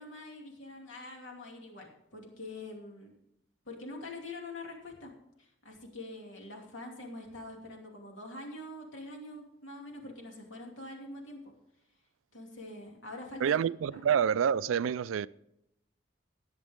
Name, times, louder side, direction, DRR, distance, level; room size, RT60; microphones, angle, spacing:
voice 1, 0.0-3.1 3.7-5.1 5.4-11.5 12.3-13.6 13.9-14.0, left 2 dB, 75° left, 2.6 m, -45 dB
voice 2, 13.4-15.3, right 8 dB, 85° right, 0.3 m, -27 dB
18.0 x 7.3 x 3.6 m
head